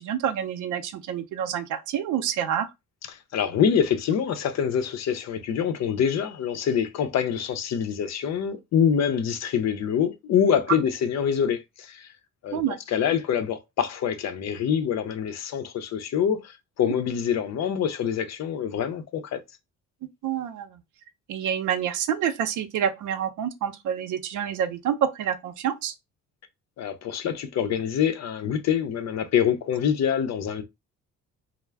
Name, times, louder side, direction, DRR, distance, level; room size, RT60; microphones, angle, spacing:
voice 1, 0.0-2.7 12.5-12.8 16.8-16.9 20.2-20.8 21.3-25.9, right 9 dB, 80° right, 0.6 m, -28 dB
voice 2, 3.1-12.1 12.4-19.4 26.8-30.6, left 8 dB, 60° left, 0.6 m, -25 dB
2.3 x 2.0 x 3.3 m
cardioid pair, 90°, 30 cm